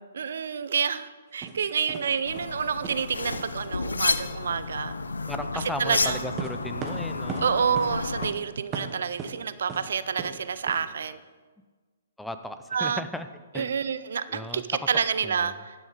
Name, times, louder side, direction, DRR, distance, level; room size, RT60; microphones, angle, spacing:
voice 1, 0.1-4.9 5.5-6.3 7.4-11.2 12.7-13.1 13.5-15.7, right 6 dB, 70° right, 14 dB, 0.5 m, -28 dB
sound 1, 1.4-1.5 1.9-2.1 2.3-2.6 2.8-3.0 3.3-3.5 6.4-7.5 7.8-7.9 8.2-8.4 8.7-9.3 9.7-9.8 10.2-10.3 10.7-10.8, right 6 dB, 25° right, 1.2 m, -36 dB
sound 2, 2.2-8.3, left 3 dB, 90° left, 0.5 m, -31 dB
voice 2, 5.3-7.5 12.2-13.3 13.5-13.7 14.3-14.6, left 1 dB, 5° left, 9 dB, 0.5 m, -36 dB
11.0 x 6.4 x 5.1 m, 1.4 s
hypercardioid pair, 130°, 0 cm